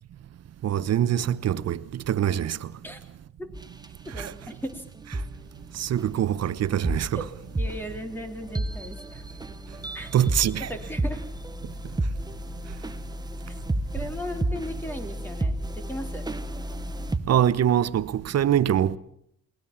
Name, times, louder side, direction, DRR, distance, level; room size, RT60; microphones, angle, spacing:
voice 1, 0.6-2.6 4.2-4.3 5.8-7.2 10.1-10.7 17.3-19.0, right 10 dB, 55° right, 1.0 m, -24 dB
sound 1, 3.5-3.9 4.1-4.3 5.1-5.3 6.0-17.2, right 1 dB, 15° right, 1.2 m, -32 dB
voice 2, 4.0-4.8 7.1-7.2 7.6-9.2 9.9-10.1 10.7-11.2 13.5-13.6 13.9-16.3, equal, 5° left, 3.3 m, -36 dB
21.5 x 19.0 x 7.2 m
cardioid pair, 90°, 30 cm